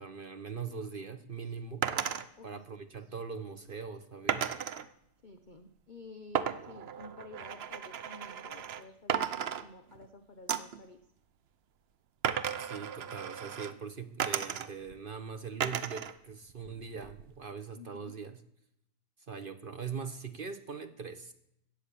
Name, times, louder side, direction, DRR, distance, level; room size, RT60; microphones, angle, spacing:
voice 1, 0.0-1.9 2.4-4.5 12.6-18.4 19.3-21.3, right 5 dB, 45° right, 9 dB, 0.7 m, -41 dB
sound 1, 1.8-2.2 4.3-4.8 6.3-8.8 9.1-10.1 10.5-10.8 12.2-13.7 14.2-14.9 15.6-16.1 16.5-17.3, right 8 dB, 80° right, 0.5 m, -34 dB
voice 2, 5.2-11.0 17.7-18.1, left 3 dB, 55° left, 7 dB, 0.5 m, -51 dB
16.0 x 8.6 x 6.9 m, 0.77 s
omnidirectional pair, 2.0 m